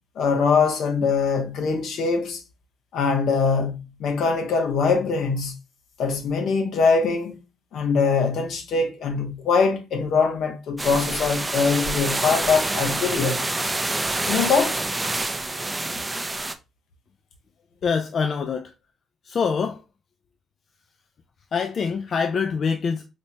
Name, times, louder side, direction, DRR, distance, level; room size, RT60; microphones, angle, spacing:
voice 1, 0.2-2.4 2.9-5.5 6.0-7.4 7.7-13.4 14.3-14.8, left 5 dB, 75° left, 0.7 m, -22 dB
sound 1, 10.8-16.5, right 2 dB, 15° right, 0.4 m, -27 dB
voice 2, 17.8-18.7 19.2-19.8 21.5-23.1, left 5 dB, 50° left, 0.3 m, -25 dB
4.2 x 2.1 x 2.8 m
cardioid pair, 90°, 0 cm